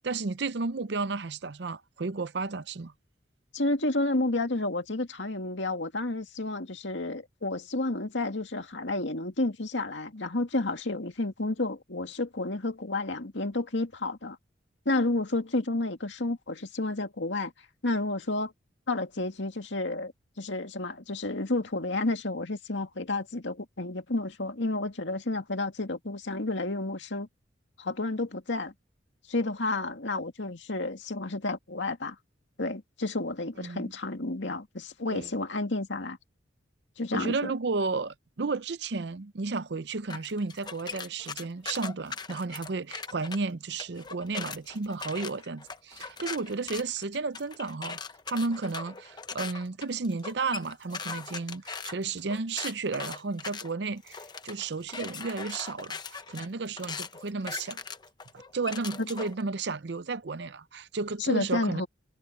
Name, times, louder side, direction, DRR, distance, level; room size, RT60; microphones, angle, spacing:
voice 1, 0.0-2.9 33.6-33.9 35.1-35.3 37.1-48.0 48.3-57.8 58.5-61.8, right 4 dB, 60° right, 0.6 m, -33 dB
voice 2, 3.5-14.4 14.9-17.5 17.8-18.5 18.9-20.1 20.4-27.3 27.8-28.7 29.3-32.2 32.6-36.2 37.0-37.5 59.0-59.1 61.2-61.9, left 2 dB, 75° left, 2.2 m, -31 dB
Squeaky Rattling Bike, 40.1-43.4 43.8-59.4, left 5 dB, 20° left, 0.8 m, -40 dB
head